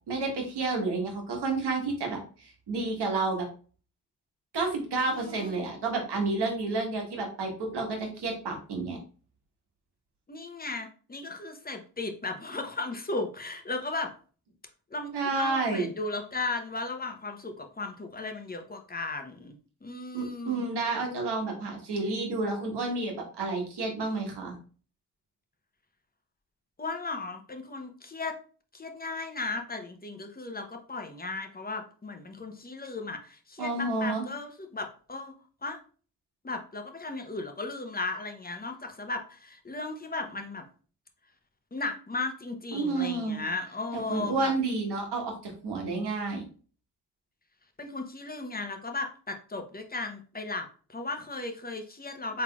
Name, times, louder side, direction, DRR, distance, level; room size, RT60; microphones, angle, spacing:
voice 1, 0.1-3.5 4.5-9.0 15.1-15.9 20.1-24.5 33.6-34.3 42.7-43.4 43.9-46.4, right 3 dB, 65° right, 1 dB, 1.4 m, -30 dB
voice 2, 5.1-5.6 10.3-14.1 14.9-19.5 19.8-20.6 26.8-28.4 28.7-35.3 35.6-35.8 36.4-40.6 41.7-44.5 47.8-52.4, left 3 dB, 20° left, 5 dB, 0.8 m, -36 dB
3.7 x 3.4 x 2.3 m, 0.40 s
supercardioid pair, 45°, 43 cm